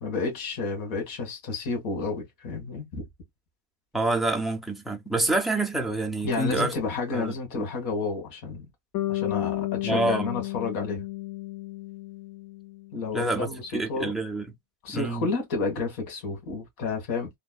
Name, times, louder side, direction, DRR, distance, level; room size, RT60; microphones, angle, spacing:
voice 1, 0.0-3.0 6.2-8.7 9.1-11.1 12.9-14.1 14.8-17.3, left 4 dB, 60° left, 1.6 m, -31 dB
voice 2, 3.9-6.7 7.1-7.6 9.8-10.3 13.1-13.5 13.7-14.5 14.9-15.2, right 2 dB, ahead, 0.3 m, -27 dB
Bass guitar, 8.9-13.1, left 16 dB, 85° left, 0.8 m, -32 dB
3.0 x 2.1 x 2.3 m
cardioid pair, 150°, 37 cm